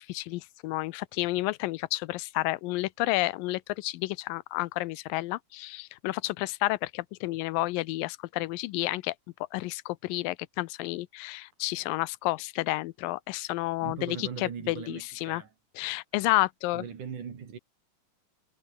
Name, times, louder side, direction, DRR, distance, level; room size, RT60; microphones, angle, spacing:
voice 1, 0.0-9.1 9.5-15.4 15.8-16.8, left 19 dB, 90° left, 2.4 m, -31 dB
voice 2, 13.8-15.5 16.7-17.6, right 7 dB, 65° right, 4.6 m, -39 dB
omnidirectional pair, 4.0 m